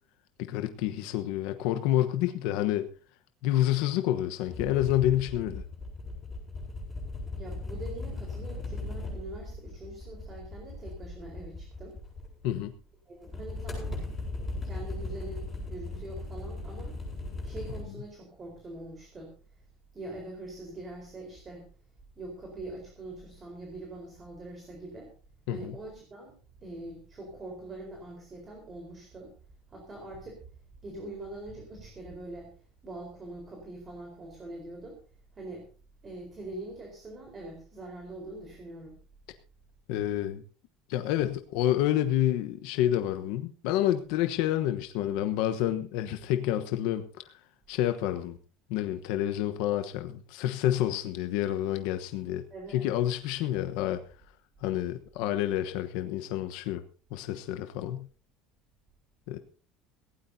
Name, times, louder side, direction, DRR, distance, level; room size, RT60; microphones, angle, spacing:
voice 1, 0.4-2.9 3.4-5.6 12.4-12.7 25.5-25.8 39.9-40.4 40.9-47.3 47.7-48.4 48.7-52.4 52.7-54.0 54.6-56.8 57.1-58.1 59.3-59.4, left 12 dB, 65° left, 8 dB, 1.1 m, -28 dB
sound 1, 4.5-12.6 13.2-17.8, left 2 dB, 15° left, 7.9 m, -38 dB
voice 2, 7.3-12.0 13.1-14.0 14.6-17.0 17.4-19.6 19.9-21.7 22.1-25.1 25.5-29.3 29.7-30.4 30.8-32.5 32.8-35.0 35.3-35.7 36.0-39.0 52.5-52.9, right 2 dB, 20° right, 1 dB, 4.4 m, -43 dB
18.0 x 17.0 x 2.8 m, 0.39 s
cardioid pair, 170°, 0 cm